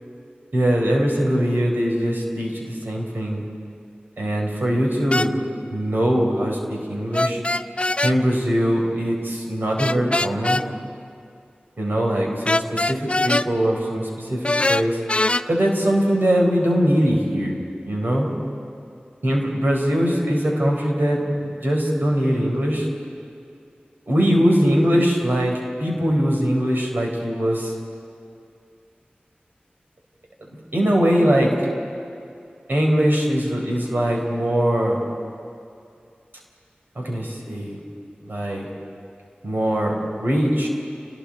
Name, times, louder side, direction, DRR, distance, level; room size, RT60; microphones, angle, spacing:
voice 1, 0.5-3.4 4.2-5.3 5.7-7.4 8.0-10.6 11.8-15.0 15.5-17.6 17.8-18.3 19.2-22.9 24.1-27.7 30.7-31.5 32.7-35.0 36.9-37.8 38.2-38.7 39.4-40.7, equal, 80° right, -1 dB, 4.3 m, -21 dB
sound 1, 5.1-5.3 7.1-8.2 9.8-10.6 12.5-13.5 14.4-15.4, left 2 dB, 35° left, 0.5 m, -21 dB
30.0 x 19.5 x 4.4 m, 2.5 s
wide cardioid pair, 50°, 3 cm